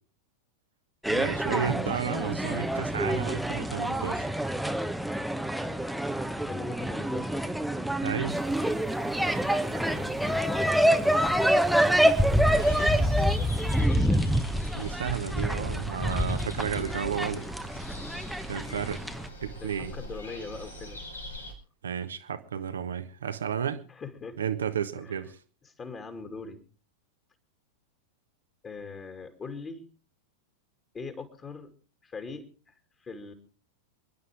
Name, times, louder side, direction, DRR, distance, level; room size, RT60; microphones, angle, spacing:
sound 1, 1.0-19.3, equal, ahead, 1.1 m, -27 dB
voice 1, 1.1-4.5 8.0-8.4 14.7-17.5 17.9-18.1 18.5-19.0 19.4-19.9 21.8-23.8 24.4-25.4, right 8 dB, 65° right, 10 dB, 1.4 m, -32 dB
voice 2, 1.7-2.1 6.3-7.5 9.5-11.6 12.1-12.6 13.8-14.3 19.1-19.2 19.6-21.0 23.9-24.4 25.0-25.3 25.6-26.6 28.6-29.9 30.9-31.7 32.0-33.3, left 4 dB, 20° left, 5 dB, 2.6 m, -41 dB
sound 2, 8.3-13.8, right 10 dB, 35° right, 1.4 m, -47 dB
sound 3, 12.5-21.5, equal, 80° left, 4.5 m, -43 dB
27.5 x 11.0 x 3.6 m, 0.36 s
figure-of-eight pair, 90°, 0 cm